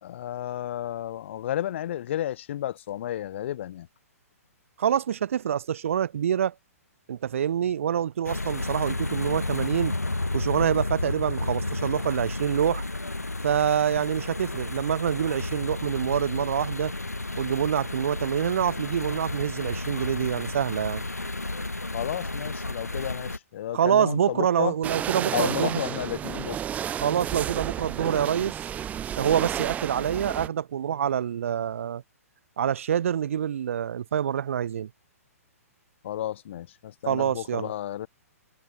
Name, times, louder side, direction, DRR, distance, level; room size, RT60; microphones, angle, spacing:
voice 1, 0.0-3.9 21.9-24.7 25.3-26.6 36.0-38.1, left 12 dB, 50° left, 2.6 m, -32 dB
voice 2, 4.8-6.5 7.1-10.0 10.3-12.8 13.4-16.9 17.4-21.0 23.7-25.8 27.0-28.6 29.2-32.0 32.6-34.9 37.1-37.7, right 9 dB, 55° right, 0.7 m, -26 dB
sound 1, 8.2-23.4, left 2 dB, 85° left, 3.1 m, -32 dB
sound 2, 24.8-30.5, right 9 dB, 15° right, 2.1 m, -32 dB
figure-of-eight pair, 120°, 8 cm